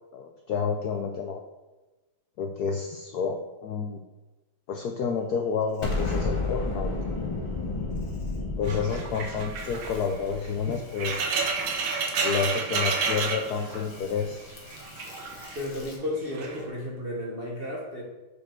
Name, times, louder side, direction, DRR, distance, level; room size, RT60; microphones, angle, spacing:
voice 1, 0.1-1.4 2.4-4.0 4.7-6.9 8.6-11.2 12.2-14.4, left 6 dB, 75° left, 4 dB, 0.9 m, -29 dB
Insect, 5.3-16.0, left 3 dB, 55° left, 1.7 m, -51 dB
Explosion, 5.8-11.0, left 3 dB, 25° left, 0.7 m, -31 dB
sound 1, 8.6-14.2 14.5-15.7 16.3-16.6, right 4 dB, 80° right, 1.7 m, -30 dB
voice 2, 15.5-18.0, left 1 dB, 35° right, -3 dB, 1.0 m, -33 dB
6.5 x 5.1 x 4.5 m, 1.1 s
omnidirectional pair, 2.2 m